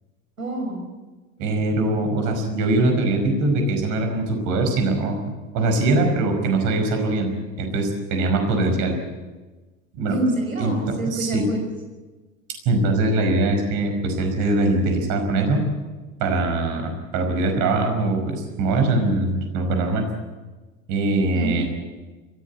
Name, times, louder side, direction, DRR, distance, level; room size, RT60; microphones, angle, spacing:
voice 1, 0.4-0.9 10.1-11.7 21.3-21.7, right 2 dB, 80° right, 2 dB, 6.0 m, -26 dB
voice 2, 1.4-5.2 5.5-7.3 7.6-9.0 9.9-10.2 10.6-10.7 11.0-11.4 12.7-15.6 16.2-20.1 20.9-21.7, right 2 dB, 45° right, 5 dB, 5.4 m, -22 dB
22.5 x 16.0 x 8.5 m, 1.2 s
figure-of-eight pair, 80°, 41 cm